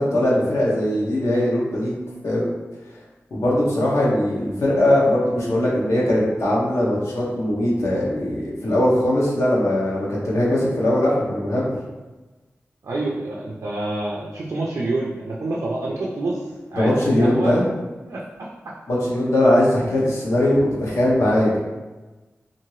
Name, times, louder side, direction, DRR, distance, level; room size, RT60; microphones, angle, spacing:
voice 1, 0.0-2.0 2.2-2.6 3.3-11.7 16.7-17.6 18.9-21.6, left 1 dB, 85° left, -6 dB, 0.8 m, -20 dB
voice 2, 12.8-16.4 16.7-17.5 18.0-18.5 19.4-19.6, right 2 dB, 80° right, -4 dB, 0.4 m, -27 dB
2.7 x 2.6 x 3.0 m, 1.2 s
wide cardioid pair, 75°, 5 cm